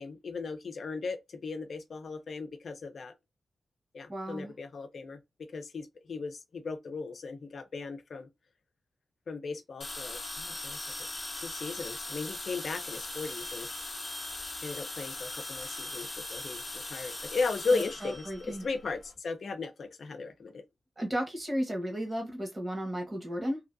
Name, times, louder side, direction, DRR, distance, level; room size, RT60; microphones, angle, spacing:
voice 1, 0.0-3.1 3.9-5.2 5.5-8.3 9.3-11.1 11.4-13.7 14.6-20.6, left 4 dB, 65° left, 0.6 m, -36 dB
voice 2, 4.1-4.5 17.7-18.6 21.0-23.6, equal, 30° right, 1.4 m, -34 dB
sound 1, 9.8-19.1, left 2 dB, 35° left, 0.8 m, -40 dB
3.0 x 2.4 x 2.5 m
cardioid pair, 70°, 0 cm